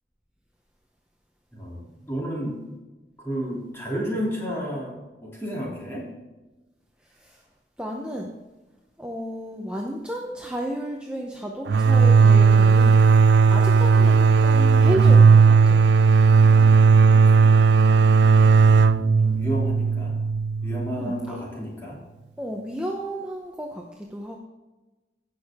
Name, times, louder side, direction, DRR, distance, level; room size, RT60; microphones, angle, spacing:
voice 1, 1.5-2.6 3.2-6.1 16.4-17.6 18.8-20.2 20.6-22.0, equal, 15° left, -4 dB, 2.9 m, -32 dB
voice 2, 7.0-7.4 7.8-8.3 9.0-15.8 19.2-19.3 20.9-21.4 22.4-24.4, equal, 5° right, -1 dB, 0.8 m, -33 dB
sound 1, 11.7-21.2, right 5 dB, 80° right, 0.3 m, -16 dB
16.0 x 6.5 x 3.6 m, 1.2 s
head